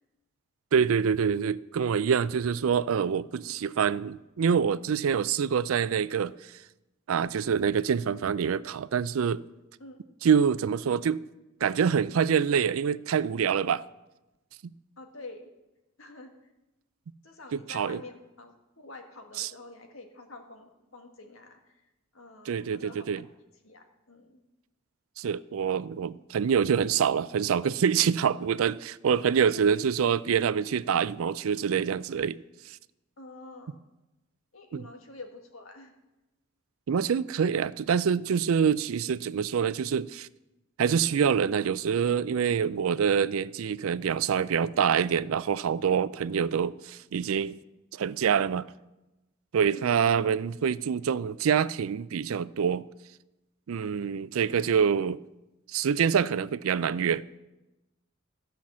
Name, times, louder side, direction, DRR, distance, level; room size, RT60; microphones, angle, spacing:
voice 1, 0.7-6.5 7.1-9.4 10.2-11.2 11.6-13.8 14.6-14.7 17.7-18.0 19.4-19.5 22.5-23.2 25.2-32.4 34.7-34.8 36.9-40.3 40.8-47.6 47.9-48.7 49.5-52.8 53.7-55.2 55.7-57.2, right 7 dB, 75° right, 0.4 m, -26 dB
voice 2, 15.0-15.5 16.0-16.5 17.2-21.8 22.1-23.2 23.6-24.4 29.2-29.5 33.2-33.8 34.5-35.9 36.9-37.4 49.6-50.2 54.4-54.6, left 2 dB, 70° left, 1.7 m, -47 dB
15.0 x 5.8 x 7.4 m
head